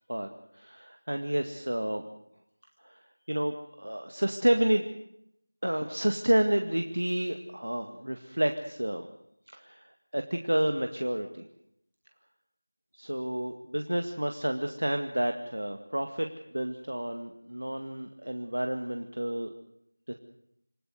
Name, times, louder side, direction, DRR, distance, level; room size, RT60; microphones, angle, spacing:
voice 1, 0.5-2.0 2.8-3.0 3.3-4.8 5.6-9.1 9.5-11.4 13.0-19.5 20.1-20.2, right 1 dB, 75° right, 5 dB, 2.1 m, -30 dB
27.0 x 15.0 x 8.1 m, 0.75 s
figure-of-eight pair, 170°, 0 cm